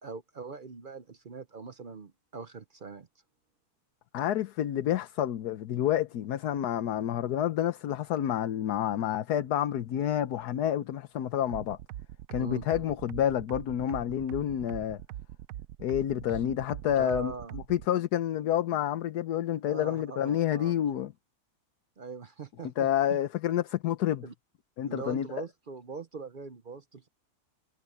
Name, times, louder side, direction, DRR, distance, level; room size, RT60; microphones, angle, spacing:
voice 1, 0.0-3.1 12.4-12.6 16.3-16.4 16.9-17.6 19.6-20.8 22.0-23.2 24.2-24.3 24.9-27.1, right 4 dB, 45° right, 0.7 m, -41 dB
voice 2, 4.1-11.8 12.3-15.0 15.8-21.1 22.8-24.2 24.8-25.4, left 11 dB, 75° left, 1.4 m, -29 dB
sound 1, 11.5-17.9, right 13 dB, 70° right, 0.9 m, -42 dB
omnidirectional pair, 1.7 m